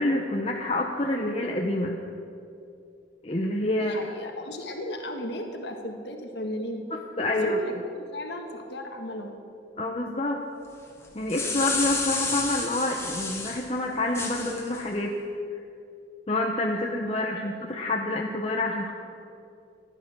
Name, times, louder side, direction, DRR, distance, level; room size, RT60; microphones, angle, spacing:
voice 1, 0.0-2.0 3.2-4.0 6.9-7.6 9.8-10.4 11.1-15.1 16.3-18.9, left 1 dB, 30° left, 1 dB, 0.8 m, -27 dB
voice 2, 3.8-6.8 7.4-9.4 17.1-17.2, left 1 dB, 65° left, 3 dB, 1.5 m, -36 dB
sound 1, 11.0-13.6 14.1-14.8, left 3 dB, 15° left, 1.9 m, -30 dB
16.0 x 11.0 x 6.1 m, 2.6 s
head